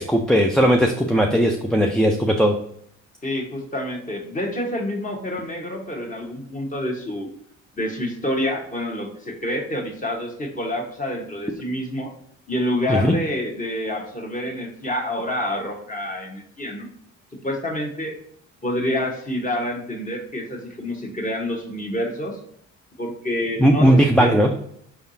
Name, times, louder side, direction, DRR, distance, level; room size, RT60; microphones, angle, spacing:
voice 1, 0.0-2.6 12.9-13.1 23.6-24.5, equal, ahead, 1 dB, 0.4 m, -17 dB
voice 2, 3.2-7.3 7.8-12.1 12.5-16.9 17.4-18.2 18.6-22.4 23.0-24.3, left 1 dB, 25° left, 0 dB, 1.2 m, -27 dB
4.7 x 3.5 x 2.7 m, 0.68 s
cardioid pair, 90°, 30 cm